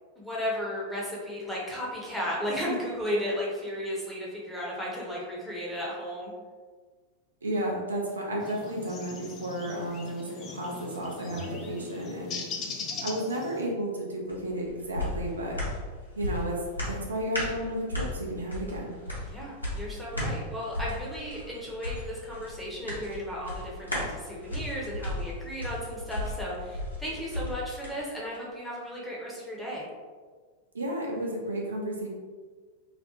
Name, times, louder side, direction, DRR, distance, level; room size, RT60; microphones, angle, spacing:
voice 1, 0.2-6.3 19.3-29.9, equal, ahead, -6 dB, 0.7 m, -34 dB
voice 2, 7.4-12.4 13.0-15.6 16.2-16.5 16.9-19.0 30.7-32.1, right 1 dB, 75° right, -2 dB, 0.4 m, -32 dB
sound 1, 8.4-13.6, left 4 dB, 30° left, 0.3 m, -40 dB
sound 2, 11.3-15.1, left 1 dB, 50° right, 1.0 m, -51 dB
sound 3, 14.3-27.9 28.3-28.4, left 1 dB, 85° left, 0.7 m, -35 dB
2.4 x 2.0 x 2.9 m, 1.5 s
figure-of-eight pair, 90°, 0 cm